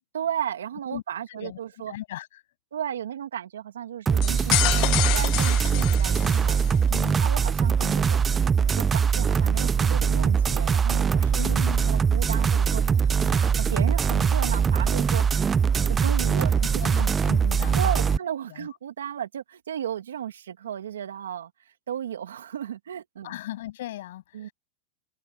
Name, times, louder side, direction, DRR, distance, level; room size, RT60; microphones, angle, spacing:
voice 1, 0.1-1.9 2.7-6.8 7.2-8.2 8.6-11.4 11.9-15.5 15.8-16.8 17.7-21.5 21.9-23.4 24.3-24.5, right 9 dB, 90° right, 2.5 m, -34 dB
voice 2, 1.3-1.6 1.9-2.3 6.9-7.3 11.4-11.9 16.6-18.2 18.5-18.7 23.2-24.5, left 14 dB, 75° left, 7.8 m, -37 dB
sound 1, 4.1-18.2, right 6 dB, 20° right, 0.4 m, -22 dB
sound 2, 4.2-6.8, left 23 dB, 50° left, 0.4 m, -27 dB
hypercardioid pair, 115°, 0 cm